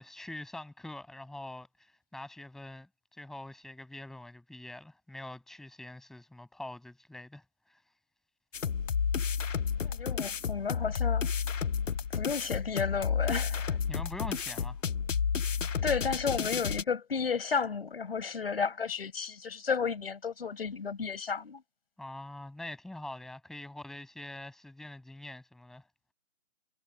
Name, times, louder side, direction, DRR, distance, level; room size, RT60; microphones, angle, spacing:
voice 1, 0.0-7.4 7.7-7.8 13.9-14.8 22.0-25.8, left 1 dB, ahead, 6.6 m, -44 dB
sound 1, 8.5-16.8, left 6 dB, 70° left, 0.8 m, -31 dB
voice 2, 9.8-11.3 12.1-13.8 15.8-21.6, left 5 dB, 50° left, 5.6 m, -32 dB
figure-of-eight pair, 160°, 39 cm